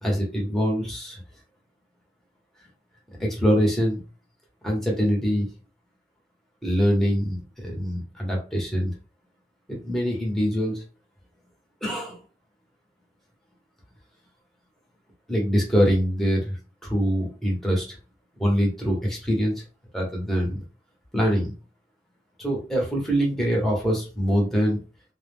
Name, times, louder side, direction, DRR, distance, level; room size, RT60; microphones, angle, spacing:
voice 1, 0.0-1.2 3.2-4.0 4.6-5.5 6.6-8.9 9.7-10.8 11.8-12.2 15.3-17.9 18.4-19.6 19.9-20.6 21.1-21.5 22.4-24.8, equal, ahead, -2 dB, 0.9 m, -24 dB
2.3 x 2.1 x 3.3 m, 0.33 s
head